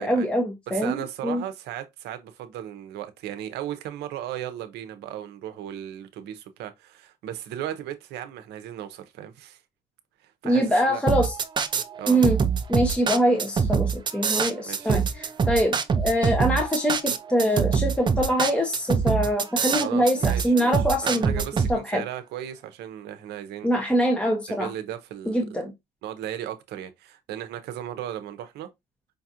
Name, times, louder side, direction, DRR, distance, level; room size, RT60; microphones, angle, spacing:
voice 1, 0.0-1.4 10.4-11.3 12.1-12.4 12.7-21.4 21.7-22.0 23.6-24.7 25.3-25.7, equal, 5° left, 0.7 m, -24 dB
voice 2, 0.7-9.6 10.2-11.0 12.0-12.2 14.7-15.0 19.8-23.7 24.5-25.6 26.0-28.7, right 11 dB, 80° right, 0.7 m, -36 dB
sound 1, 11.1-21.7, right 6 dB, 25° right, 0.5 m, -24 dB
5.2 x 2.4 x 2.7 m
cardioid pair, 110°, 17 cm